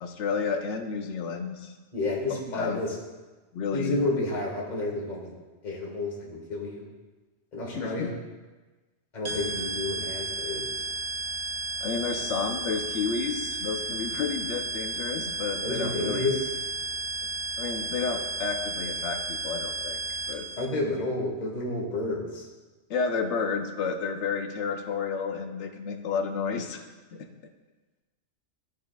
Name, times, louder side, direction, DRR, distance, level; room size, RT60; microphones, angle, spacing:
voice 1, 0.0-1.7 2.3-2.8 3.5-4.0 7.7-8.1 11.8-16.3 17.6-20.0 20.3-20.5 22.9-27.3, left 5 dB, 80° left, 5 dB, 1.0 m, -31 dB
voice 2, 1.9-2.9 3.7-5.3 5.6-6.9 7.5-8.1 9.1-10.8 15.6-16.5 20.6-22.4, left 2 dB, 40° left, -3 dB, 1.4 m, -30 dB
sound 1, 9.2-20.7, right 3 dB, 45° right, 0.4 m, -33 dB
12.5 x 4.7 x 2.3 m, 1.2 s
omnidirectional pair, 1.2 m